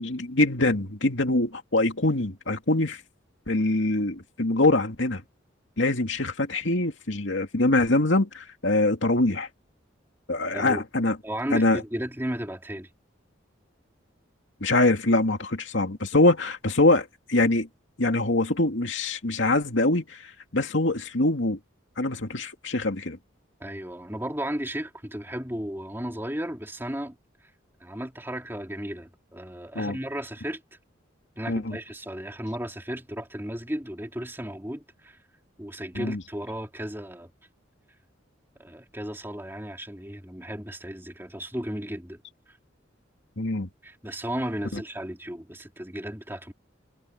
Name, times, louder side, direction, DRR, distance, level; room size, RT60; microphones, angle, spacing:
voice 1, 0.0-3.0 3.5-5.2 5.8-9.5 10.3-11.2 11.5-11.8 14.6-17.7 18.0-21.6 22.0-23.2 29.7-30.0 31.5-31.8 35.9-36.2 43.4-43.7 44.7-44.8, left 2 dB, 80° left, 2.5 m, -24 dB
voice 2, 10.5-10.8 11.2-12.9 23.6-27.2 27.8-30.6 31.4-35.2 35.6-37.3 38.6-42.2 42.5-42.6 43.8-46.5, equal, 10° right, 2.9 m, -34 dB
head